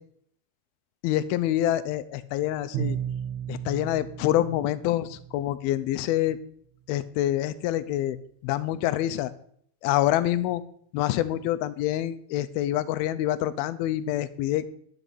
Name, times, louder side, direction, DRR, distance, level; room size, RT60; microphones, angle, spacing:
voice 1, 1.0-3.0 3.5-6.4 6.9-8.2 8.4-9.3 9.8-10.6 10.9-14.7, left 13 dB, 85° left, 13 dB, 2.4 m, -26 dB
Bowed string instrument, 2.7-5.5, right 9 dB, 65° right, 2.3 m, -34 dB
11.0 x 5.0 x 8.2 m, 0.65 s
omnidirectional pair, 4.4 m